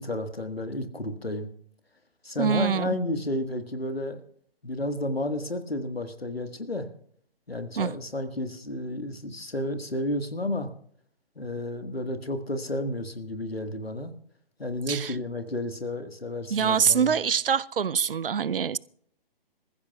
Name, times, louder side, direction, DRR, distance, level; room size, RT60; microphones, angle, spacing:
voice 1, 0.0-1.5 2.2-4.2 4.6-6.9 7.5-10.7 11.3-14.1 14.6-17.1, left 1 dB, 90° left, 1.6 m, -31 dB
voice 2, 2.4-3.0 7.8-7.9 14.9-15.1 16.5-18.8, right 7 dB, 70° right, 0.6 m, -24 dB
26.5 x 15.0 x 2.3 m
figure-of-eight pair, 135°, 29 cm